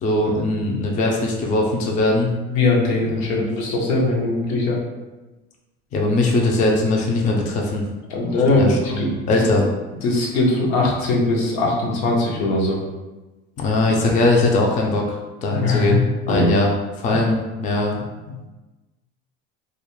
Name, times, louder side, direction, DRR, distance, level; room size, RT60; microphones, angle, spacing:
voice 1, 0.0-2.3 3.2-3.5 5.9-7.8 8.5-9.7 13.6-16.0 16.3-18.4, left 2 dB, 25° left, 0 dB, 0.4 m, -20 dB
voice 2, 2.5-4.8 8.1-9.6 10.0-12.8 15.5-16.5 17.1-17.2, left 2 dB, 80° left, -2 dB, 0.7 m, -21 dB
2.3 x 2.0 x 2.9 m, 1.1 s
supercardioid pair, 120°, 29 cm